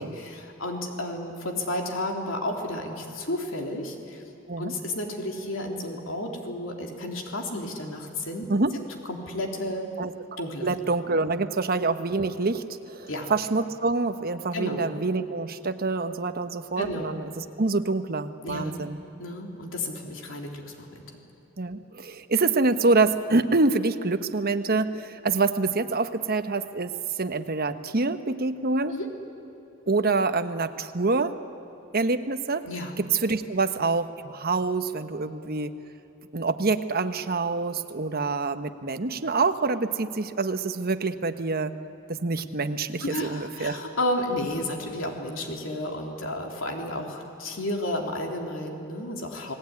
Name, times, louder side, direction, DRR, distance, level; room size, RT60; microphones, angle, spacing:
voice 1, 0.0-4.2 4.6-8.5 9.0-9.9 10.4-10.8 13.1-13.3 14.5-14.9 16.8-17.1 18.4-18.7 19.2-21.0 28.9-29.1 32.7-33.0 43.0-49.5, left 1 dB, 70° left, 2 dB, 3.4 m, -32 dB
voice 2, 10.0-19.0 21.6-26.9 27.2-28.9 29.9-31.3 31.9-32.7 33.1-35.7 36.3-41.7 42.1-43.8, right 3 dB, 50° right, 9 dB, 1.1 m, -26 dB
29.5 x 19.0 x 9.6 m, 3.0 s
head